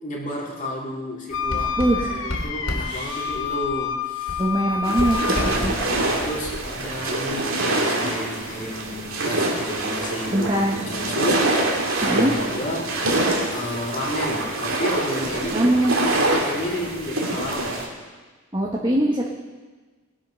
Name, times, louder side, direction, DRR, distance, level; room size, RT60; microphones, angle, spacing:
voice 1, 0.0-4.4 5.3-13.0 13.5-17.8, equal, 40° left, -2 dB, 2.5 m, -31 dB
Writing, 1.3-4.0 4.3-7.0, left 1 dB, 85° left, 2.6 m, -33 dB
Wind instrument woodwind instrument, 1.3-5.7, left 7 dB, 65° left, 0.9 m, -28 dB
voice 2, 1.8-2.4 2.8-3.3 4.4-5.7 10.3-10.8 12.0-12.3 15.5-16.0 18.5-19.3, right 1 dB, 25° right, -3 dB, 1.2 m, -22 dB
sound 1, 4.8-17.9, right 2 dB, 80° right, 2.4 m, -25 dB
19.5 x 7.5 x 5.7 m, 1.3 s
head